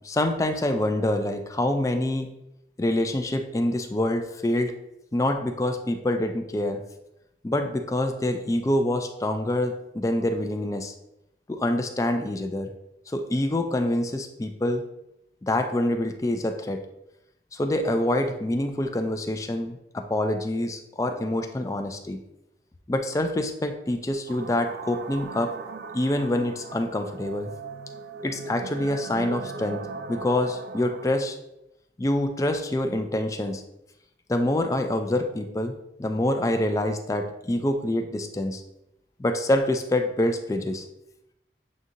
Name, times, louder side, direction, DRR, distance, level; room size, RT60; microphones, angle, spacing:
voice 1, 0.0-2.3 2.8-4.7 5.1-6.8 7.4-10.9 11.5-12.7 13.1-14.8 15.4-16.9 17.5-22.2 22.9-25.5 25.9-27.5 28.2-31.4 32.0-33.6 34.3-35.7 36.0-38.6 39.2-40.8, left 1 dB, 20° left, 6 dB, 0.3 m, -26 dB
sound 1, 24.3-31.1, right 4 dB, 60° right, 0.3 m, -39 dB
7.4 x 2.7 x 2.6 m, 0.87 s
head